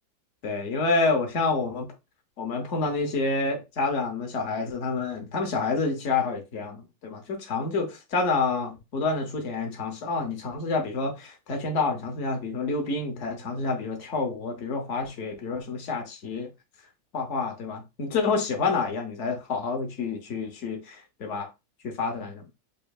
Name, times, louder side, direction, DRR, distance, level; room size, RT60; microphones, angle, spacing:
voice 1, 0.4-1.9 2.4-16.5 17.1-21.5 21.8-22.4, left 4 dB, 50° left, 1.0 m, -28 dB
5.1 x 2.6 x 2.3 m
omnidirectional pair, 2.0 m